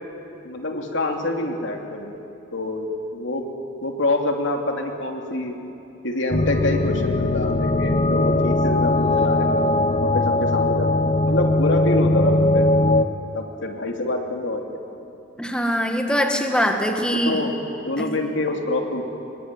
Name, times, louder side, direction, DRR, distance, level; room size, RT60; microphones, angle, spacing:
voice 1, 0.4-2.2 2.5-2.9 3.1-3.4 3.8-5.5 6.0-9.6 10.0-10.9 11.2-12.6 13.3-14.6 17.3-19.0, left 2 dB, 70° left, 3 dB, 3.0 m, -26 dB
sound 1, 6.3-13.1, left 2 dB, 35° left, 0.8 m, -20 dB
voice 2, 15.4-17.4 18.0-18.1, equal, 5° left, 3 dB, 1.8 m, -22 dB
25.5 x 22.5 x 9.7 m, 2.9 s
head